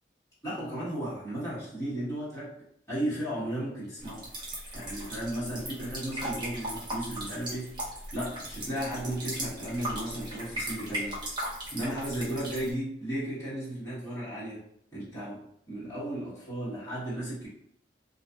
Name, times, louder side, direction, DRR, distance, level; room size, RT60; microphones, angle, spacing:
voice 1, 0.4-2.5 2.9-4.3 4.7-7.8 8.1-14.7 14.9-17.5, right 1 dB, 15° left, -11 dB, 1.2 m, -35 dB
sound 1, 4.0-12.7, right 1 dB, 25° right, 0.8 m, -38 dB
2.6 x 2.4 x 2.3 m, 0.72 s
head